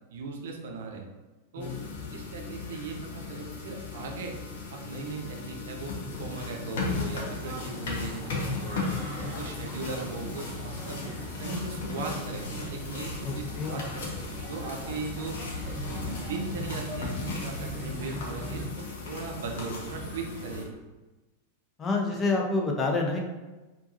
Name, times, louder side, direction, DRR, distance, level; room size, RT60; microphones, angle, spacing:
voice 1, 0.1-1.1 1.5-1.7 2.1-4.3 4.7-5.9 6.2-8.8 9.1-11.1 11.4-14.1 14.5-15.4 15.9-20.7, right 4 dB, 60° right, 2 dB, 0.6 m, -38 dB
sound 1, 1.6-20.6, left 4 dB, 55° left, 0.7 m, -37 dB
sound 2, 7.0-18.6, equal, 15° right, 0.9 m, -41 dB
sound 3, 7.9-20.7, equal, 80° left, 1.3 m, -45 dB
voice 2, 13.2-13.9 21.8-23.3, left 3 dB, 20° left, 0 dB, 0.7 m, -28 dB
4.6 x 2.5 x 2.6 m, 1.1 s
figure-of-eight pair, 90°, 0 cm